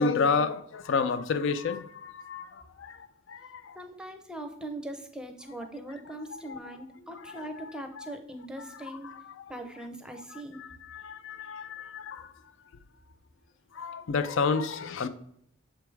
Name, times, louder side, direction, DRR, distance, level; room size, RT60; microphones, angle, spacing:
voice 1, 0.0-3.8 6.3-6.6 7.1-8.2 8.6-9.5 10.3-12.3 13.7-15.1, left 4 dB, 60° left, 0.4 m, -31 dB
voice 2, 3.7-9.1 9.5-10.7, right 1 dB, 5° right, 0.6 m, -41 dB
6.9 x 3.4 x 4.6 m
head